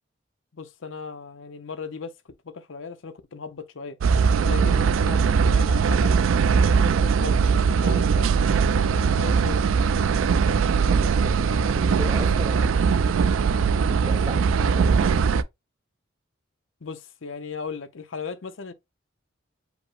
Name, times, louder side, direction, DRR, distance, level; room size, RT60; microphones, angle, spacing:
voice 1, 0.5-2.1 2.4-4.0 4.4-6.2 6.7-7.4 7.8-8.3 8.7-9.6 16.8-18.7, left 5 dB, 75° left, 0.6 m, -37 dB
Train int moving swedish train no passengers, 4.0-15.4, right 5 dB, 80° right, 0.4 m, -20 dB
voice 2, 10.6-13.3 13.9-15.1, right 1 dB, 20° right, 0.5 m, -37 dB
5.0 x 2.1 x 4.6 m
head